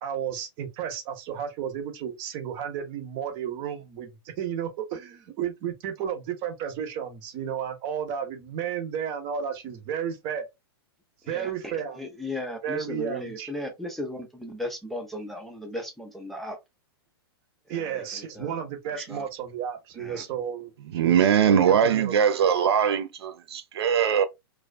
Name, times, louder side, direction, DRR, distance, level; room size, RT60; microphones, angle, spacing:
voice 1, 0.0-10.5 11.3-12.0 12.6-13.5 17.7-22.1, right 8 dB, 40° right, 0.7 m, -33 dB
voice 2, 11.2-16.6 17.7-19.3 20.0-20.2, left 1 dB, ahead, 0.5 m, -36 dB
voice 3, 20.9-24.3, right 8 dB, 75° right, 0.4 m, -21 dB
2.4 x 2.3 x 2.3 m
hypercardioid pair, 125°, 13 cm